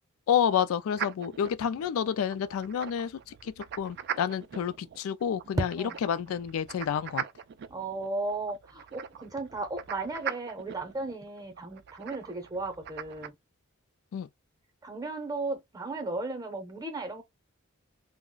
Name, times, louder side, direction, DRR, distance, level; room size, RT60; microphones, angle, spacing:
voice 1, 0.3-5.8 6.1-7.2 14.1-14.3, left 8 dB, 80° left, 0.3 m, -29 dB
sound 1, 0.9-13.3, right 9 dB, 50° right, 0.3 m, -41 dB
voice 2, 7.7-13.3 14.8-17.2, right 2 dB, 20° right, 0.7 m, -35 dB
2.4 x 2.1 x 3.7 m
head